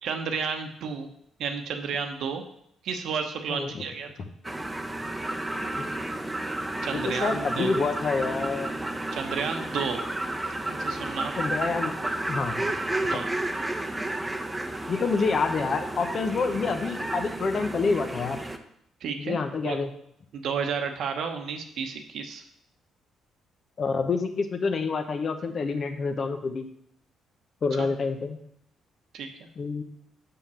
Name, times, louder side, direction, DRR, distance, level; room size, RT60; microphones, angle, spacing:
voice 1, 0.0-1.1 1.4-2.4 2.8-4.1 6.8-7.7 9.1-10.0 10.5-11.3 13.1-13.3 19.0-19.4 19.6-19.8 20.3-22.4 27.8-27.9 29.1-29.3, right 6 dB, 75° right, 4 dB, 1.0 m, -31 dB
voice 2, 3.5-3.8 5.7-5.9 7.0-8.7 11.4-11.9 12.3-12.6 14.9-18.4 19.2-19.9 23.8-26.7 27.6-28.4 29.6-29.8, left 4 dB, 50° left, 7 dB, 1.0 m, -27 dB
sound 1, 4.4-18.6, right 1 dB, 10° right, 0.8 m, -32 dB
5.9 x 5.6 x 6.9 m, 0.73 s
cardioid pair, 90°, 0 cm